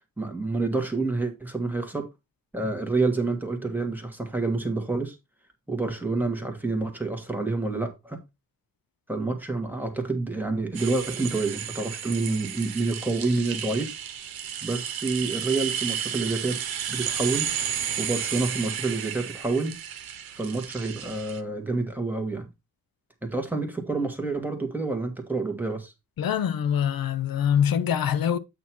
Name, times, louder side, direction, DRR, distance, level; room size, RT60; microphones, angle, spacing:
voice 1, 0.2-2.1 2.5-5.2 5.7-8.2 9.1-13.9 14.6-16.6 16.9-17.5 18.0-19.8 20.3-22.5 23.2-25.9, right 3 dB, 5° right, 1.4 m, -28 dB
sound 1, 10.7-21.4, right 9 dB, 85° right, 1.0 m, -33 dB
voice 2, 26.2-28.4, left 8 dB, 75° left, 0.7 m, -24 dB
8.5 x 2.9 x 5.9 m
wide cardioid pair, 155°, 35 cm